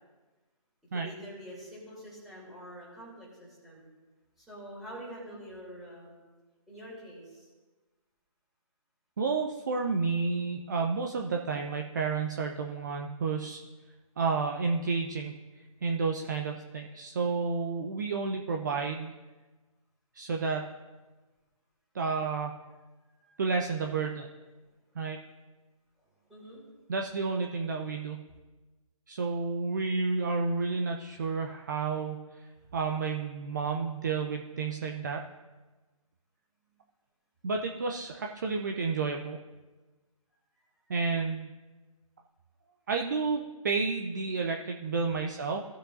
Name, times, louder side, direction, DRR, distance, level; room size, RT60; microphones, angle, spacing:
voice 1, 0.9-3.9 4.4-6.2 6.7-7.5 23.2-23.4 26.3-26.6, equal, ahead, -8 dB, 2.9 m, -46 dB
voice 2, 9.2-13.6 14.2-15.3 15.8-19.1 20.1-20.7 21.9-22.6 23.4-24.3 25.0-25.2 26.9-28.2 29.1-32.2 32.7-35.2 37.4-39.4 40.9-41.5 42.9-45.6, right 4 dB, 30° right, 2 dB, 0.6 m, -31 dB
17.5 x 6.6 x 2.6 m, 1.2 s
figure-of-eight pair, 150°, 18 cm